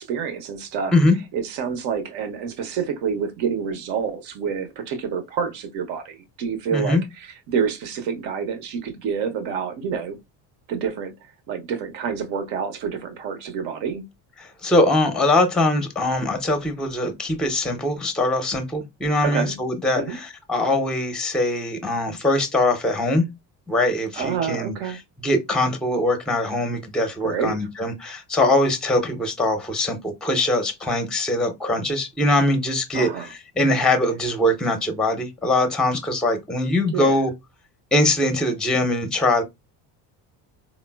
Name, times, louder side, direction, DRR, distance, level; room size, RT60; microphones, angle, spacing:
voice 1, 0.0-0.9 1.3-10.2 10.7-11.1 11.5-14.0 19.2-19.6 20.0-20.2 24.1-25.0 27.2-27.6 32.9-33.3 36.9-37.2, right 6 dB, 65° right, 0.9 m, -28 dB
voice 2, 6.7-7.0 14.4-23.3 23.7-24.7 25.2-33.1 33.6-37.3 37.9-39.4, left 1 dB, ahead, 0.6 m, -22 dB
3.6 x 2.1 x 2.2 m
supercardioid pair, 80°, 48 cm